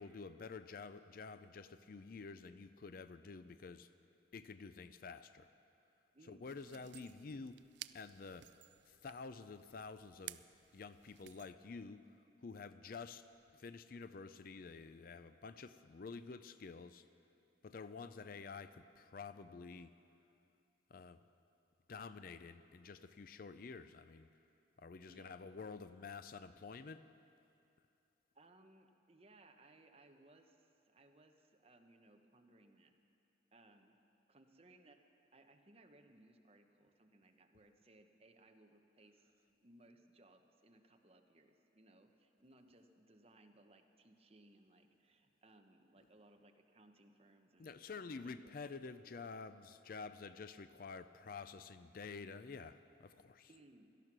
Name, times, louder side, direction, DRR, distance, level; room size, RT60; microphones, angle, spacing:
voice 1, 0.0-3.9 4.3-5.5 6.3-7.6 7.9-8.5 8.9-10.4 10.7-12.1 12.4-13.2 13.5-17.0 17.6-19.9 20.9-21.2 21.9-24.3 24.8-27.0 47.6-53.5, left 4 dB, 50° left, 12 dB, 0.4 m, -50 dB
voice 2, 6.1-6.9 25.1-25.3 28.3-32.9 33.5-34.0 34.3-35.0 35.3-47.8 48.2-48.6 53.5-53.9, right 2 dB, 35° right, 5 dB, 1.0 m, -65 dB
sound 1, 6.4-11.5, right 15 dB, 70° right, 0.4 m, -55 dB
17.5 x 12.5 x 6.0 m, 2.6 s
head